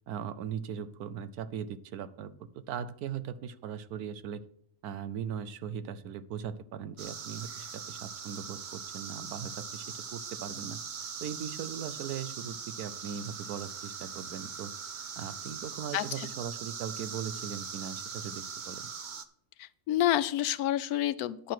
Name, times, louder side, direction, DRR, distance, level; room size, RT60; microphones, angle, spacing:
voice 1, 0.1-4.4 4.8-9.9 10.1-18.9, right 8 dB, 80° right, 14 dB, 1.2 m, -39 dB
sound 1, 7.0-19.3, right 6 dB, 45° right, 0.6 m, -41 dB
voice 2, 15.9-16.3 19.6-21.5, left 13 dB, 80° left, 15 dB, 1.1 m, -29 dB
10.0 x 4.6 x 7.6 m, 0.66 s
omnidirectional pair, 1.6 m